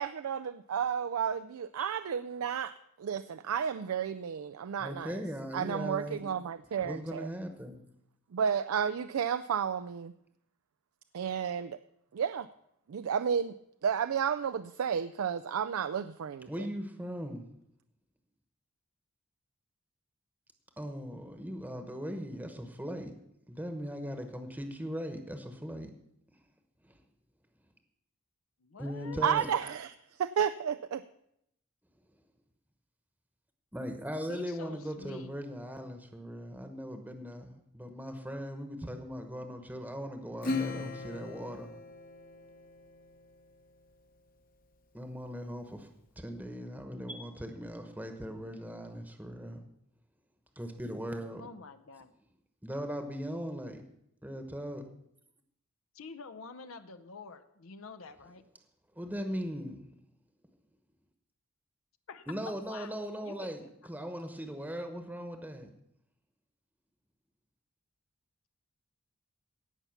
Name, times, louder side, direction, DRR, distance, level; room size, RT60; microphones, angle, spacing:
voice 1, 0.0-2.7 3.0-5.2 5.5-7.3 8.3-10.1 11.1-11.8 12.1-12.5 12.9-13.6 13.8-16.5 29.2-29.9 30.2-31.0, right 7 dB, 80° right, 13 dB, 0.4 m, -32 dB
voice 2, 4.8-6.2 6.8-7.8 16.5-17.4 20.8-23.1 23.5-25.9 26.8-27.0 28.8-29.5 33.7-41.7 44.9-45.9 46.2-49.6 50.6-51.4 52.6-53.8 54.2-54.9 59.0-59.9 62.3-63.6 63.9-65.7, equal, 10° right, 6 dB, 1.1 m, -39 dB
voice 3, 28.6-29.3 34.3-35.4 51.4-52.1 55.9-58.4 62.1-63.0 63.2-63.6, left 4 dB, 70° left, 10 dB, 0.7 m, -47 dB
Acoustic guitar / Strum, 40.4-43.3, left 3 dB, 40° left, 1.0 m, -38 dB
17.0 x 5.7 x 7.2 m, 0.77 s
head